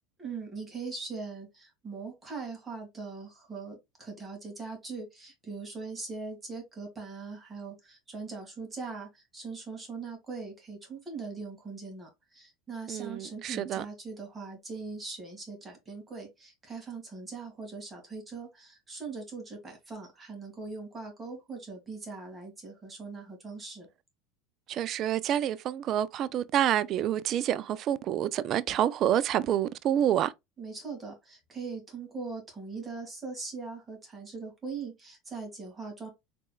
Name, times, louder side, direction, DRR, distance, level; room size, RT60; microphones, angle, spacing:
voice 1, 0.2-23.9 30.6-36.1, right 4 dB, 20° right, 2.1 m, -41 dB
voice 2, 12.9-13.8 24.7-30.3, right 10 dB, 45° right, 0.4 m, -28 dB
4.2 x 3.4 x 2.3 m
supercardioid pair, 110°, 0 cm